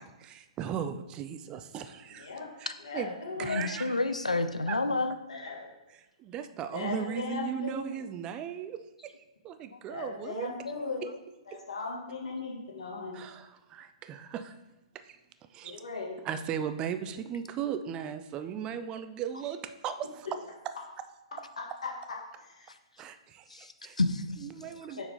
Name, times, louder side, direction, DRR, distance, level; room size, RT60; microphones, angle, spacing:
voice 1, 0.0-2.3 2.6-4.0 4.7-4.8 6.2-9.1 9.4-10.5 11.0-11.1 11.5-11.6 13.1-14.5 14.9-15.2 15.5-15.8 16.2-20.4 20.7-21.1 23.0-24.0 24.4-25.0, right 8 dB, 25° right, 11 dB, 0.3 m, -37 dB
voice 2, 2.2-2.5 2.8-3.7 5.3-5.7 6.7-7.9 9.9-11.0 11.5-13.2 15.6-16.2 22.4-22.7 23.5-23.7 25.0-25.1, left 4 dB, 65° left, -2 dB, 1.7 m, -37 dB
voice 3, 3.4-5.1 9.7-9.8 23.5-23.7 24.0-24.2, left 2 dB, 85° left, 9 dB, 0.5 m, -29 dB
5.4 x 4.5 x 3.8 m, 1.0 s
figure-of-eight pair, 120°, 4 cm